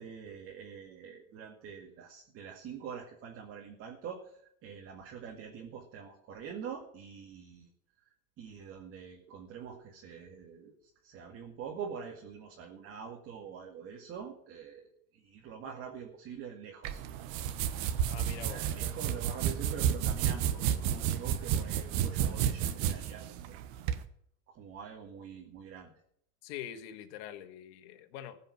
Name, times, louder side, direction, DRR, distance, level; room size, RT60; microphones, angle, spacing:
voice 1, 0.0-7.7 8.0-8.1 8.4-17.0 18.4-23.6 24.5-25.9, right 7 dB, 45° right, 1 dB, 2.1 m, -45 dB
sound 1, 16.8-24.0, right 9 dB, 65° right, 1.2 m, -31 dB
voice 2, 18.1-18.6 26.4-28.4, left 10 dB, 85° left, 9 dB, 1.6 m, -44 dB
15.5 x 5.6 x 9.7 m, 0.70 s
cardioid pair, 145°, 31 cm